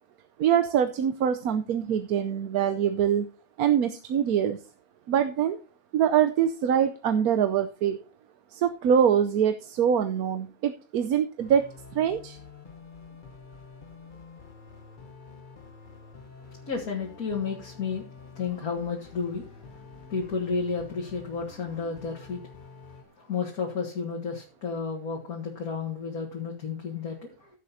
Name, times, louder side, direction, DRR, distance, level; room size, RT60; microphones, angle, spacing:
voice 1, 0.4-3.3 3.6-4.6 5.1-5.6 5.9-8.0 8.5-12.4, right 8 dB, 85° right, 9 dB, 1.2 m, -24 dB
sound 1, 11.4-23.0, left 4 dB, 40° left, 1.0 m, -48 dB
voice 2, 16.7-22.4 23.2-27.5, left 5 dB, 90° left, -1 dB, 2.3 m, -32 dB
15.5 x 7.6 x 2.7 m, 0.36 s
omnidirectional pair, 1.5 m